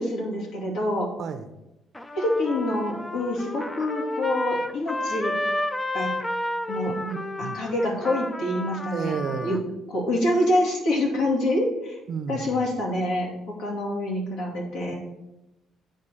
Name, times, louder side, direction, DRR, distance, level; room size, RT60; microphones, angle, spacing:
voice 1, 0.0-1.1 2.2-5.3 5.9-6.1 6.7-6.9 7.4-9.2 9.4-9.6 9.9-12.0 12.3-15.0, left 1 dB, 85° left, -2 dB, 2.5 m, -26 dB
Trumpet, 1.9-9.6, left 1 dB, 10° left, 0.4 m, -31 dB
voice 2, 7.0-7.6 8.9-9.6 12.1-12.6 14.9-15.0, right 6 dB, 45° right, 9 dB, 0.6 m, -32 dB
8.8 x 3.8 x 6.6 m, 0.94 s
cardioid pair, 165°, 0 cm